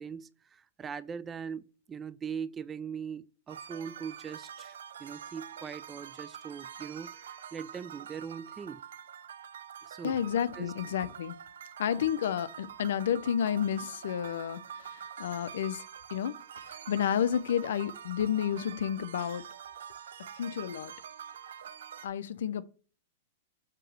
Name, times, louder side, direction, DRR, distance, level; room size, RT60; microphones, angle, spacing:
voice 1, 0.0-8.8 9.8-10.2 10.5-10.7, right 7 dB, 20° right, 0.4 m, -41 dB
sound 1, 3.5-22.1, right 8 dB, 85° right, 0.7 m, -46 dB
voice 2, 10.0-11.4 11.8-15.8 16.1-16.4 16.6-19.4 20.4-20.9 22.0-22.6, left 9 dB, 80° left, 0.6 m, -31 dB
7.6 x 3.0 x 6.1 m
hypercardioid pair, 140°, 0 cm